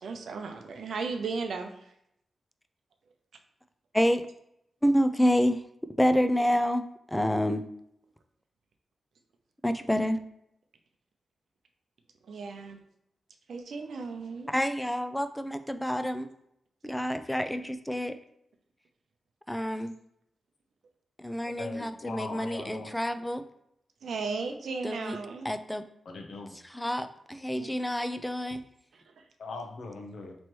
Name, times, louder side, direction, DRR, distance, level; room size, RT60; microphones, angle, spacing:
voice 1, 0.0-1.8 12.2-12.8 13.5-14.5 24.0-25.5 27.6-27.7 28.9-29.2, right 4 dB, 75° right, 5 dB, 0.5 m, -36 dB
voice 2, 4.8-5.6 6.0-7.6 9.6-10.2 14.5-16.3 16.8-18.1 19.5-20.0 21.2-23.4 24.8-25.2 25.4-25.8 26.7-28.6, equal, 5° left, 9 dB, 0.3 m, -28 dB
voice 3, 21.4-22.9 26.0-26.5 29.4-30.4, left 3 dB, 75° left, 3 dB, 0.7 m, -40 dB
3.1 x 3.0 x 4.4 m, 0.75 s
cardioid pair, 85°, 0 cm